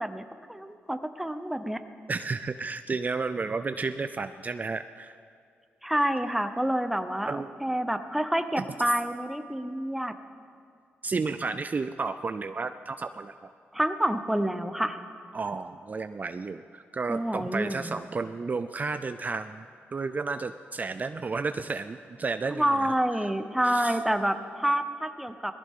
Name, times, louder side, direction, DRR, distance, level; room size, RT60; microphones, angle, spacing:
voice 1, 0.0-1.8 5.8-10.1 13.7-15.0 17.1-18.0 22.5-25.5, right 1 dB, 5° right, 9 dB, 0.9 m, -28 dB
voice 2, 2.1-5.1 7.3-7.5 8.6-8.7 11.0-13.4 15.3-19.6 19.9-22.9 23.1-23.3 23.6-24.0, right 4 dB, 35° right, 10 dB, 0.4 m, -32 dB
19.0 x 15.0 x 3.7 m, 2.3 s
cardioid pair, 70°, 5 cm